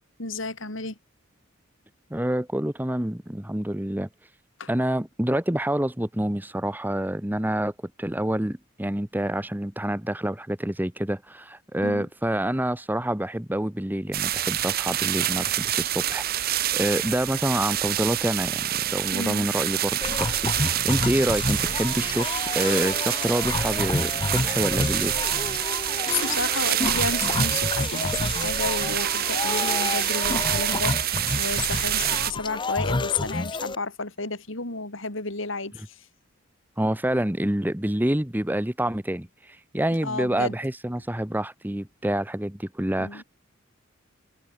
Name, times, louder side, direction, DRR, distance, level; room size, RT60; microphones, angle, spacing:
voice 1, 0.2-1.0 4.6-4.7 11.8-12.1 19.1-19.5 25.6-25.7 26.1-36.1 39.9-40.6 43.0-43.2, left 3 dB, 65° left, 4.6 m, -32 dB
voice 2, 2.1-4.1 4.7-7.7 8.0-25.2 36.8-43.2, right 1 dB, 10° right, 1.2 m, -27 dB
sound 1, 14.1-32.3, right 13 dB, 50° right, 0.6 m, -27 dB
sound 2, 20.0-33.7, left 3 dB, 25° left, 0.7 m, -29 dB
head